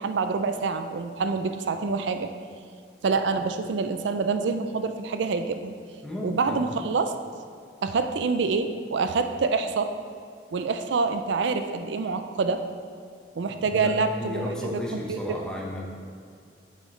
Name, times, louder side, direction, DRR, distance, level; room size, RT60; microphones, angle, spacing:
voice 1, 0.0-2.3 3.0-5.7 6.2-7.1 7.8-9.9 10.5-12.6 13.4-15.4, right 4 dB, 75° right, 8 dB, 0.4 m, -26 dB
voice 2, 6.0-6.6 13.5-16.0, left 1 dB, 5° left, -3 dB, 0.9 m, -34 dB
9.2 x 6.3 x 3.2 m, 2.1 s
head